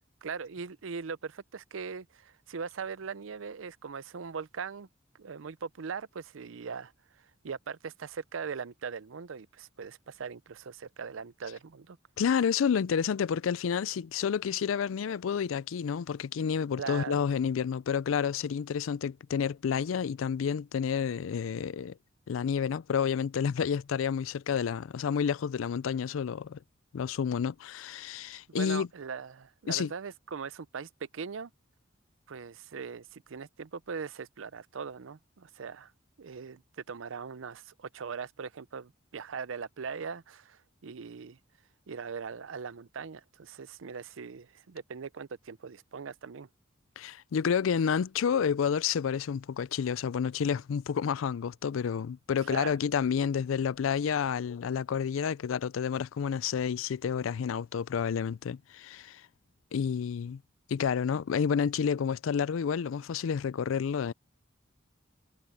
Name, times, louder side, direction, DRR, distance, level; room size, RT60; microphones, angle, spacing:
voice 1, 0.2-4.9 5.1-12.0 16.8-17.2 28.5-31.5 32.3-35.9 36.2-41.4 41.9-46.5 52.4-52.8, right 5 dB, 80° right, 0.6 m, -40 dB
voice 2, 12.2-21.9 22.3-26.6 26.9-28.9 29.7-29.9 47.0-59.2 59.7-60.4 60.7-64.1, left 7 dB, 85° left, 0.4 m, -30 dB
head